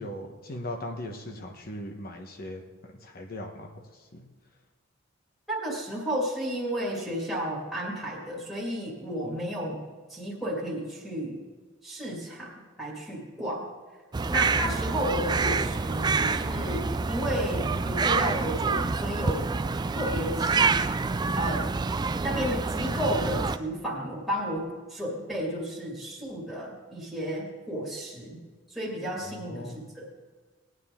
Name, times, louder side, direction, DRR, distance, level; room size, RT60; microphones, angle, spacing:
voice 1, 0.0-4.2 29.2-29.8, left 1 dB, 50° left, 3 dB, 1.2 m, -39 dB
voice 2, 5.5-9.8 10.1-11.4 11.8-13.7 14.3-19.5 19.9-20.8 21.3-21.7 22.2-28.4 28.7-30.2, equal, ahead, -6 dB, 2.2 m, -32 dB
sound 1, 14.1-23.6, right 4 dB, 20° right, 0.3 m, -27 dB
18.5 x 9.6 x 3.8 m, 1.4 s
head